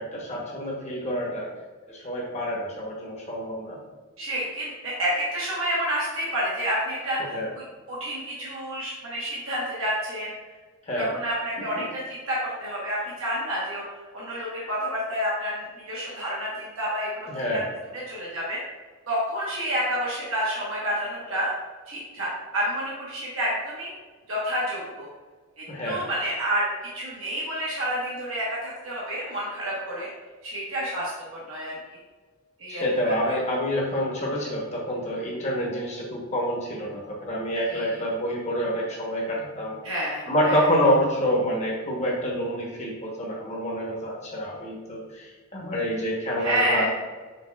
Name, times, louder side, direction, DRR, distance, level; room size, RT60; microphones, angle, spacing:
voice 1, 0.0-1.5 1.9-3.8 7.2-7.5 10.9-11.1 11.6-11.7 17.3-17.6 25.7-26.1 32.7-39.8 40.3-45.3 45.5-46.8, equal, 30° left, -3 dB, 0.9 m, -27 dB
voice 2, 4.2-10.3 11.0-17.6 17.9-18.6 19.1-21.5 21.9-23.9 24.3-25.1 25.6-26.7 26.9-30.1 30.4-31.7 32.6-33.3 37.6-38.0 39.8-40.7 46.4-46.9, equal, 75° right, -7 dB, 1.1 m, -29 dB
5.6 x 3.3 x 2.3 m, 1.4 s
head